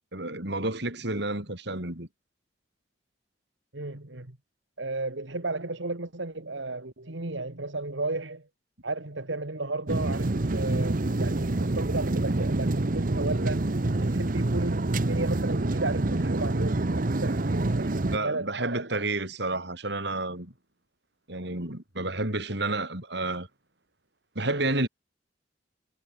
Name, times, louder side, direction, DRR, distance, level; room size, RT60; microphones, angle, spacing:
voice 1, 0.1-2.1 18.1-20.5 21.3-23.5 24.4-24.9, right 2 dB, 65° right, 5.8 m, -30 dB
voice 2, 3.7-4.4 4.8-8.5 8.8-13.6 14.0-19.0, right 2 dB, 80° right, 2.4 m, -34 dB
sound 1, 9.9-18.2, right 2 dB, 45° right, 0.9 m, -27 dB
head